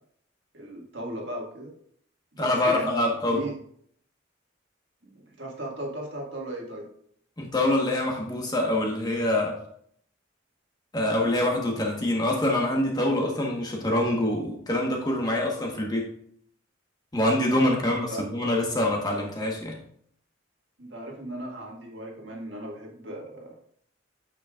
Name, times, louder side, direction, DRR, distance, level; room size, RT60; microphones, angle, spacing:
voice 1, 0.5-1.7 2.3-3.6 5.0-6.9 17.8-18.2 20.8-23.6, right 1 dB, 65° right, -1 dB, 1.8 m, -37 dB
voice 2, 2.4-3.4 7.4-9.6 10.9-16.1 17.1-19.7, left 1 dB, 20° left, 0 dB, 1.2 m, -25 dB
8.5 x 6.7 x 2.4 m, 0.64 s
head